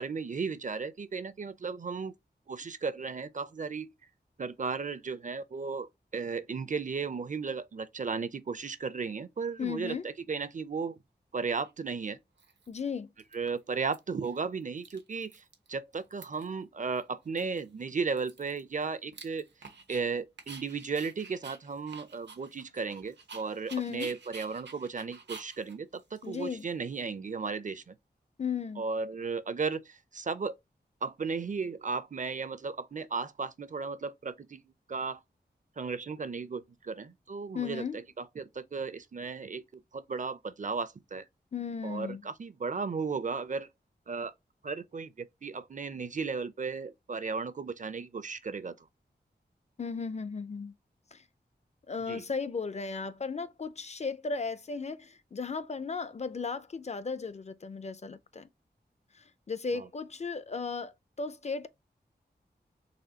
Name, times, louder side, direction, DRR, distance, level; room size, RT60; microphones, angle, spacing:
voice 1, 0.0-2.1 2.5-3.9 4.4-10.9 11.3-12.2 13.3-15.4 15.7-19.5 19.9-27.9 28.8-30.5 31.0-34.6 34.9-35.2 35.8-39.6 39.9-41.2 41.8-43.7 44.1-44.3 44.6-48.7 52.1-52.2 59.7-59.9, right 5 dB, 45° right, 0.5 m, -35 dB
voice 2, 9.6-10.1 12.7-13.1 23.7-24.1 26.2-26.7 28.4-28.8 37.5-38.0 41.5-42.2 49.8-50.7 51.1-51.2 51.9-58.5 59.1-60.9 61.2-61.7, left 5 dB, 40° left, 0.4 m, -35 dB
Dog, 11.6-11.7 12.4-12.9 13.2-13.9 14.2-14.4 14.6-15.7 15.9-16.6 16.9-17.0 17.4-20.0 20.4-27.0, right 4 dB, 85° right, 0.9 m, -50 dB
4.1 x 3.1 x 2.8 m
wide cardioid pair, 90°, 18 cm